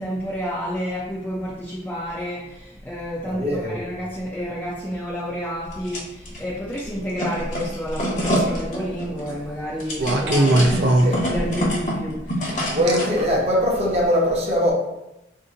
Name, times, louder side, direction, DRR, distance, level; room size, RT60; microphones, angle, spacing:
voice 1, 0.0-10.8 11.2-12.7, equal, 10° left, -7 dB, 0.4 m, -30 dB
voice 2, 3.2-3.8 10.0-10.1 10.6-11.3 12.7-14.7, equal, 35° right, -3 dB, 0.8 m, -22 dB
sound 1, 5.7-6.4 6.7-13.2, equal, 45° left, 0.9 m, -27 dB
sound 2, 8.2-8.6 10.0-11.7 12.9-13.0 13.8-14.0, right 1 dB, 70° right, 0.5 m, -20 dB
2.7 x 2.6 x 3.7 m, 0.90 s
head